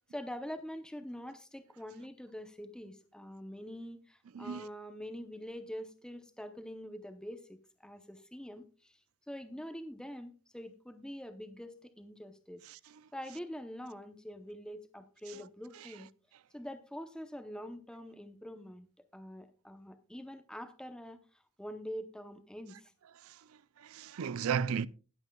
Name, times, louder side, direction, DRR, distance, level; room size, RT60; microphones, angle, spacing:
voice 1, 0.1-9.0 9.3-12.6 13.1-16.1 16.5-18.9 19.1-21.2 21.6-22.9, equal, 5° left, 0.7 m, -45 dB
voice 2, 4.3-4.7 12.7-12.8 23.2-23.4 23.8-24.9, right 7 dB, 80° right, 0.4 m, -34 dB
20.0 x 8.0 x 2.3 m
head